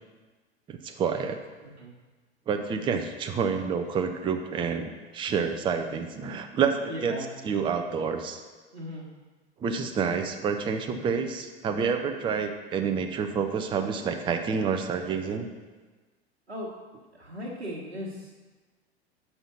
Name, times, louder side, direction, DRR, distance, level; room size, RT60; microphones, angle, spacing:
voice 1, 0.7-1.4 2.5-7.2 7.4-8.4 9.6-15.5, right 6 dB, 15° right, 6 dB, 0.5 m, -28 dB
voice 2, 6.9-7.3 8.7-9.1 16.5-16.7 17.1-18.3, left 1 dB, 90° right, -6 dB, 1.2 m, -37 dB
5.6 x 5.5 x 5.9 m, 1.3 s
figure-of-eight pair, 85°, 32 cm